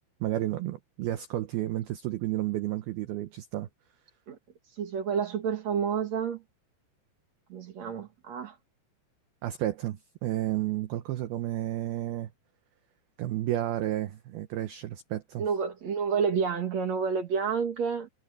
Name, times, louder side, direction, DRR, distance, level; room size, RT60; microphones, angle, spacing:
voice 1, 0.2-3.7 9.4-12.3 13.2-15.5, right 14 dB, 85° right, 2.2 m, -31 dB
voice 2, 4.8-6.4 7.5-8.6 15.4-18.1, right 6 dB, 55° right, 2.1 m, -29 dB
omnidirectional pair, 5.6 m